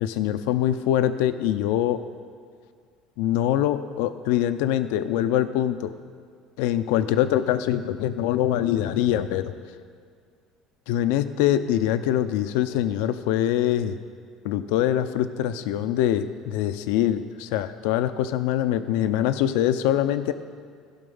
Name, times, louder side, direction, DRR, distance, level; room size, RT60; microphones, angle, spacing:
voice 1, 0.0-2.0 3.2-5.9 6.6-9.5 10.9-14.0 14.4-20.3, left 11 dB, 85° left, 11 dB, 0.5 m, -24 dB
16.0 x 5.6 x 5.5 m, 2.1 s
cardioid pair, 130°, 0 cm